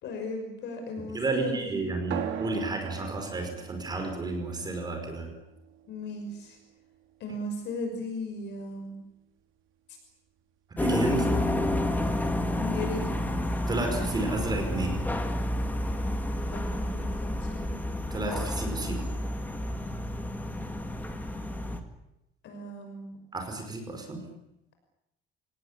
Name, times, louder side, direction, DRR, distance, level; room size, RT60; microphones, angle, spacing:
voice 1, 0.0-1.8 5.8-6.6 7.2-9.0 9.9-10.0 11.1-11.7 12.6-13.3 16.4-17.8 22.4-23.1, left 2 dB, 55° left, 4 dB, 6.0 m, -37 dB
voice 2, 1.1-5.3 10.8-11.3 13.7-15.0 18.1-19.0 23.3-24.2, right 3 dB, 20° right, 4 dB, 5.1 m, -31 dB
sound 1, 2.1-7.1, right 9 dB, 75° right, 3.2 m, -41 dB
sound 2, 10.8-21.8, left 1 dB, 10° left, 2.1 m, -30 dB
27.0 x 18.5 x 9.8 m, 0.86 s
cardioid pair, 175°, 21 cm